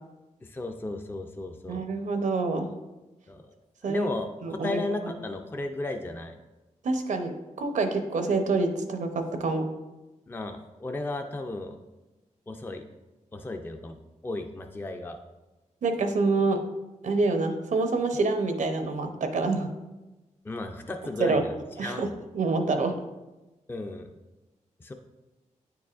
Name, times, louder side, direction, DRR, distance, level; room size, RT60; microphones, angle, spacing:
voice 1, 0.4-1.9 3.3-3.5 3.8-6.4 10.3-11.8 12.5-12.9 13.3-14.0 14.2-15.2 20.4-21.5 21.8-22.1 23.7-24.1 24.8-24.9, left 2 dB, 15° left, 5 dB, 0.4 m, -34 dB
voice 2, 1.7-2.7 3.8-4.1 4.4-5.1 6.8-9.6 15.8-16.6 17.0-19.7 21.2-21.4 21.8-22.9, right 3 dB, 75° right, 6 dB, 0.7 m, -27 dB
9.1 x 4.7 x 2.5 m, 1.1 s
cardioid pair, 85°, 13 cm